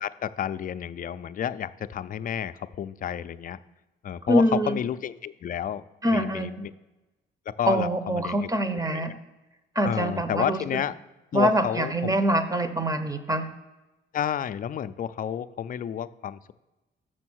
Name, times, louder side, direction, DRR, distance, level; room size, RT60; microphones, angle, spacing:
voice 1, 0.0-3.6 4.0-5.8 6.1-6.7 7.5-9.2 9.8-11.0 11.3-12.2 14.1-16.5, left 9 dB, 45° left, 13 dB, 0.4 m, -31 dB
voice 2, 4.3-4.8 6.0-6.6 7.7-9.1 9.7-10.6 11.3-13.5, right 1 dB, 15° right, 11 dB, 0.8 m, -24 dB
6.8 x 6.3 x 6.2 m, 1.1 s
cardioid pair, 90°, 20 cm